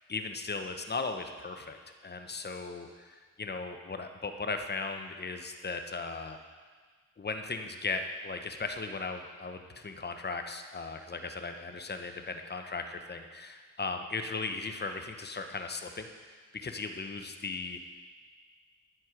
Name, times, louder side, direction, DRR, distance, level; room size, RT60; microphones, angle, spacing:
voice 1, 0.1-1.8 2.0-6.4 7.2-16.1 16.5-17.8, left 4 dB, 30° left, 6 dB, 0.9 m, -37 dB
9.3 x 7.7 x 4.9 m, 1.5 s
cardioid pair, 50°, 32 cm